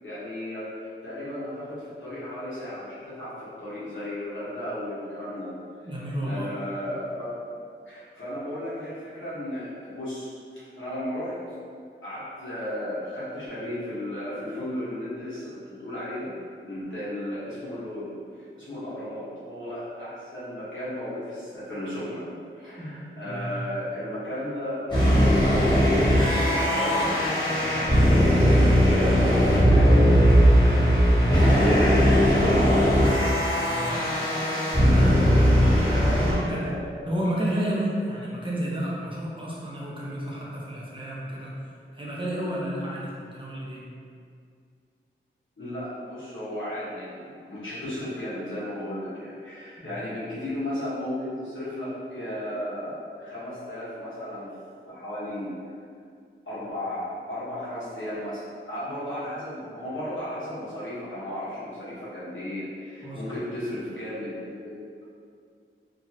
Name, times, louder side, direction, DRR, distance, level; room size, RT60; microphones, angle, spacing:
voice 1, 0.0-5.5 5.8-5.9 6.2-7.3 7.8-11.3 12.0-16.3 16.6-22.2 22.5-27.9 28.5-32.8 35.8-36.8 45.6-54.5 54.8-55.5 56.4-64.8, left 1 dB, 65° left, -11 dB, 1.3 m, -35 dB
voice 2, 5.9-6.5 22.8-23.6 33.6-34.0 34.8-36.6 37.1-41.5 41.9-43.9 49.8-50.1 63.0-63.3, right 1 dB, 25° right, -6 dB, 0.7 m, -31 dB
sound 1, 24.9-36.3, equal, 20° left, 1.2 m, -19 dB
3.0 x 2.3 x 2.8 m, 2.3 s
cardioid pair, 40°, 21 cm